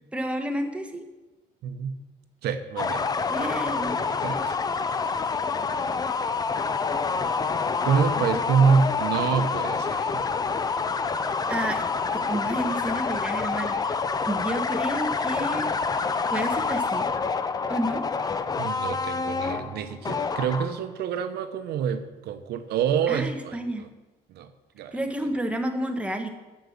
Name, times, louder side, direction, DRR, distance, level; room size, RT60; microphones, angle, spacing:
voice 1, 0.1-1.0 3.3-4.0 11.5-14.0 14.2-15.7 16.3-17.1 17.7-18.0 23.1-23.9 24.9-26.3, right 1 dB, 5° right, 4 dB, 1.1 m, -30 dB
voice 2, 1.6-2.0 2.4-3.1 3.4-4.6 7.8-10.2 18.6-23.9 24.3-24.5 24.8-25.0, right 6 dB, 70° right, 9 dB, 0.8 m, -27 dB
sound 1, 2.8-20.9, left 5 dB, 25° left, 0.5 m, -27 dB
7.8 x 6.4 x 7.0 m, 1.1 s
cardioid pair, 110°, 17 cm